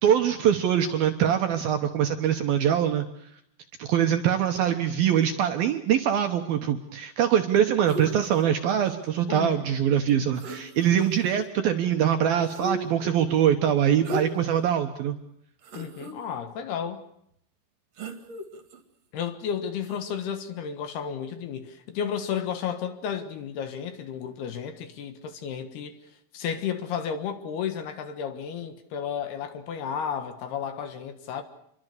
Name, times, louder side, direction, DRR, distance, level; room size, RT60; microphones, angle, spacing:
voice 1, 0.0-3.1 3.8-15.2, right 9 dB, 70° right, 2.4 m, -23 dB
sound 1, 7.9-8.5 10.1-10.2 10.4-11.3 12.4-13.1 14.0-14.5 15.0-15.1 15.6-16.1 18.0-18.8 19.8-20.0, left 1 dB, 45° right, 2.6 m, -36 dB
voice 2, 15.7-17.0 19.1-26.0 26.3-31.4, left 8 dB, 65° left, 3.1 m, -32 dB
28.0 x 23.0 x 6.7 m
omnidirectional pair, 5.5 m